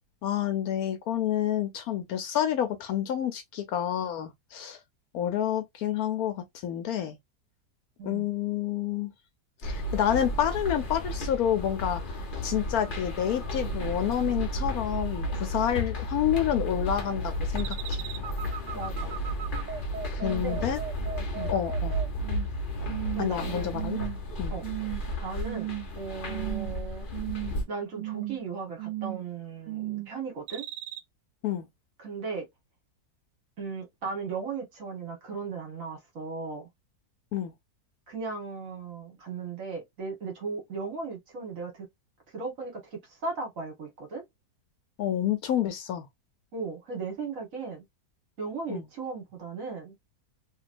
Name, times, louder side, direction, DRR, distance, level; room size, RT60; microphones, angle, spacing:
voice 1, 0.2-4.8 5.1-7.2 8.0-9.1 9.6-12.0 12.4-18.0 20.1-20.8 21.5-22.0 23.2-24.0 24.4-24.5 31.4-31.7 37.3-37.5 45.0-46.1 48.7-48.9, left 10 dB, 70° left, 1.0 m, -29 dB
sound 1, 9.6-27.6, equal, 40° left, 0.8 m, -33 dB
sound 2, 17.6-22.5 22.9-23.4 23.7-24.2 24.6-25.0 25.4-26.0 26.3-26.8 27.1-27.6 27.9-28.4 28.8-29.3 29.7-30.1 30.5-31.0, right 13 dB, 80° right, 1.2 m, -36 dB
voice 2, 18.7-19.2 20.2-20.7 21.3-21.5 23.1-23.8 24.5-24.6 25.2-25.7 25.9-27.1 27.7-30.6 32.0-32.4 33.6-36.7 38.1-41.9 42.3-44.2 46.5-47.8 48.4-49.9, right 4 dB, 55° right, 1.6 m, -36 dB
3.0 x 2.9 x 2.5 m
omnidirectional pair, 1.8 m